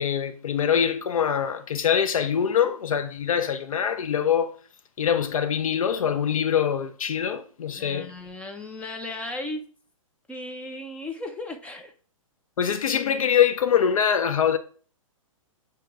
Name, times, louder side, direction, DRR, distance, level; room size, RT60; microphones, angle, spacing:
voice 1, 0.0-4.5 5.0-8.1 12.6-14.6, left 8 dB, 80° left, 0.7 m, -24 dB
voice 2, 7.8-9.6 10.3-11.9, left 2 dB, 5° left, 0.6 m, -36 dB
7.7 x 3.0 x 4.6 m
hypercardioid pair, 140°, 18 cm